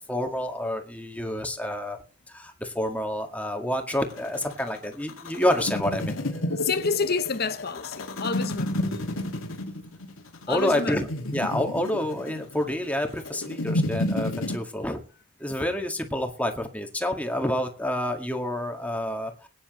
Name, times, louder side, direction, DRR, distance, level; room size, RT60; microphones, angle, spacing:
voice 1, 0.1-2.0 2.3-6.2 10.5-15.0 15.4-19.5, left 1 dB, 5° left, 1.9 m, -28 dB
sound 1, 3.9-14.6, left 1 dB, 85° left, 2.2 m, -31 dB
voice 2, 6.5-8.9 10.5-11.0, left 5 dB, 50° left, 0.8 m, -29 dB
22.0 x 10.0 x 3.1 m
head